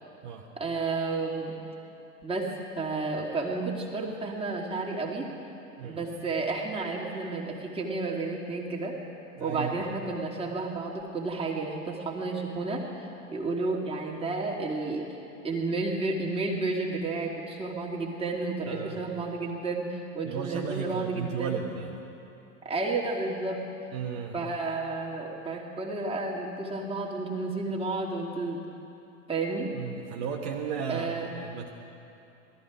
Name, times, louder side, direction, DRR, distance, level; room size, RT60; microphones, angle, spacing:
voice 1, 0.6-1.6 2.2-5.3 5.8-9.0 9.4-12.9 13.3-15.1 15.4-21.6 22.6-23.6 24.3-28.6 29.3-29.7 30.9-31.3, right 3 dB, 15° right, -3 dB, 2.4 m, -31 dB
voice 2, 9.4-9.7 18.7-19.0 20.2-22.0 23.9-24.4 29.7-31.7, right 7 dB, 50° right, 0 dB, 1.3 m, -35 dB
19.5 x 13.5 x 5.0 m, 2.8 s
figure-of-eight pair, 85°, 39 cm